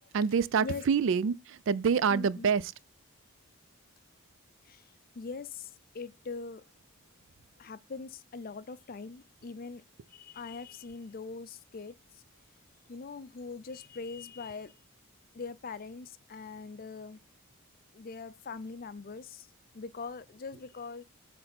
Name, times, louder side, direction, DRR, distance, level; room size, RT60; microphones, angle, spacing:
voice 1, 0.1-2.6, right 6 dB, 60° right, 0.3 m, -26 dB
voice 2, 2.1-2.5 4.6-6.7 7.6-9.8 10.1-12.2 12.9-14.8 15.3-17.2 17.9-21.0, left 4 dB, 40° left, 0.5 m, -42 dB
7.8 x 3.4 x 4.3 m
head